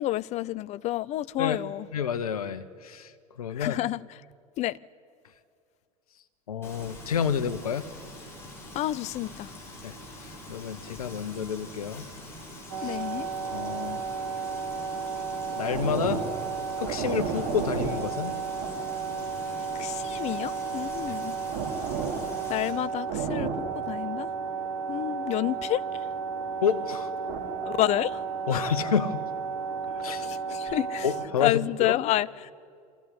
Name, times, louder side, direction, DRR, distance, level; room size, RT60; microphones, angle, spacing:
voice 1, 0.0-1.9 3.5-4.0 4.6-4.8 8.7-9.5 12.8-13.3 19.7-21.4 22.5-24.3 24.9-26.1 27.6-28.2 28.5-28.7 30.2-31.1 31.4-32.5, left 15 dB, 35° left, 0.5 m, -29 dB
voice 2, 1.9-3.1 3.4-3.8 6.5-7.9 9.8-10.0 10.5-12.1 12.8-13.0 13.5-14.0 15.6-16.2 16.8-18.3 21.1-21.2 26.6-27.1 28.5-29.2 29.9-30.3 31.0-32.0, left 7 dB, 75° left, 1.1 m, -29 dB
Frying (food), 6.6-22.7, left 1 dB, 15° left, 6.7 m, -45 dB
sound 1, 12.7-31.3, right 5 dB, 50° right, 4.0 m, -32 dB
23.5 x 15.0 x 9.7 m
figure-of-eight pair, 80°, 19 cm